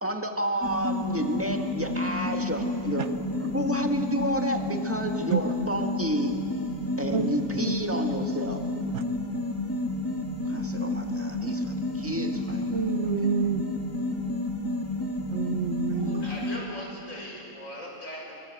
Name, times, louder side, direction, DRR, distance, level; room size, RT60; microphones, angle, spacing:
voice 1, 0.0-3.2 3.4-6.4 7.0-8.7 10.4-12.7, right 1 dB, 10° right, 4 dB, 1.7 m, -30 dB
sound 1, 0.6-16.6, left 2 dB, 10° left, 2.2 m, -30 dB
voice 2, 12.7-13.7 15.3-16.3, right 6 dB, 55° right, 11 dB, 1.1 m, -28 dB
voice 3, 15.9-18.3, equal, 65° left, -2 dB, 6.5 m, -39 dB
29.5 x 23.0 x 7.9 m, 2.8 s
omnidirectional pair, 1.5 m